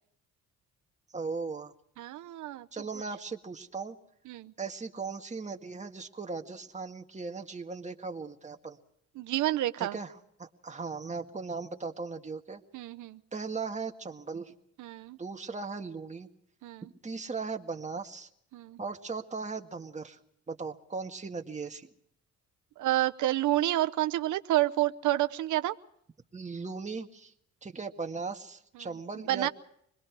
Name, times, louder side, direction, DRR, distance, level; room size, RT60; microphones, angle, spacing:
voice 1, 1.1-1.7 2.7-4.0 4.6-8.8 9.8-10.1 10.4-12.6 13.3-14.5 15.2-16.3 16.8-18.3 18.8-20.2 20.5-21.9 26.3-27.3 27.6-29.5, right 4 dB, 25° right, 4 dB, 1.9 m, -38 dB
voice 2, 2.0-2.7 4.3-4.5 9.2-10.0 12.7-13.2 14.8-15.2 16.6-16.9 18.5-18.8 22.8-25.7 29.3-29.5, right 15 dB, 80° right, 10 dB, 0.8 m, -29 dB
26.0 x 21.0 x 4.7 m, 0.70 s
cardioid pair, 90°, 30 cm